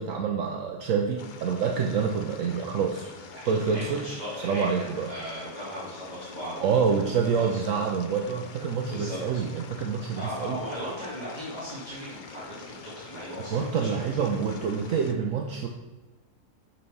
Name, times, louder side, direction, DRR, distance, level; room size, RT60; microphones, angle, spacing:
voice 1, 0.0-3.1 3.5-4.0 4.4-5.1 6.6-10.6 13.5-15.7, right 6 dB, 65° right, 2 dB, 1.0 m, -27 dB
sound 1, 1.2-15.1, left 5 dB, 65° left, 0.5 m, -46 dB
voice 2, 3.3-7.6 7.9-8.1 8.8-9.2 10.2-14.2 14.5-14.9, equal, 25° right, -10 dB, 2.4 m, -38 dB
8.4 x 4.4 x 5.4 m, 1.2 s
omnidirectional pair, 1.6 m